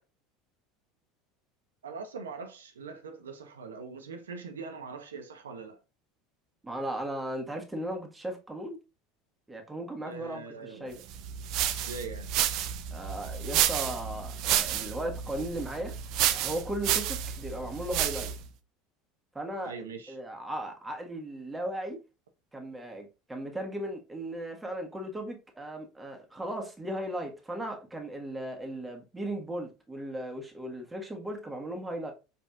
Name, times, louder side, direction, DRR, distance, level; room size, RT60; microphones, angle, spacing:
voice 1, 1.8-5.8 10.0-11.1 11.7-12.3 19.6-20.2, right 4 dB, 85° right, 0.8 m, -42 dB
voice 2, 6.6-8.8 9.5-11.0 12.9-16.0 16.3-18.3 19.3-19.7 20.1-22.0 22.5-32.1, right 1 dB, 10° right, 1.5 m, -36 dB
sound 1, 11.1-18.5, right 10 dB, 55° right, 0.5 m, -30 dB
5.2 x 4.1 x 2.4 m
hypercardioid pair, 75°, 0 cm